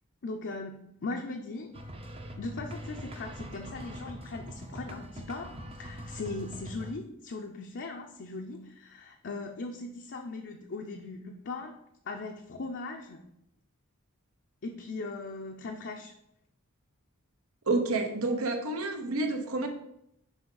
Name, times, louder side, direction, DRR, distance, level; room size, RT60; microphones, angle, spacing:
voice 1, 0.2-1.8 2.4-11.8 12.0-13.2 14.6-16.1, left 3 dB, 55° left, 2 dB, 0.6 m, -39 dB
sound 1, 1.7-6.9, right 1 dB, 25° right, 0.7 m, -42 dB
voice 2, 17.7-19.7, right 2 dB, 75° right, 5 dB, 1.0 m, -29 dB
6.1 x 5.0 x 3.9 m, 0.78 s
head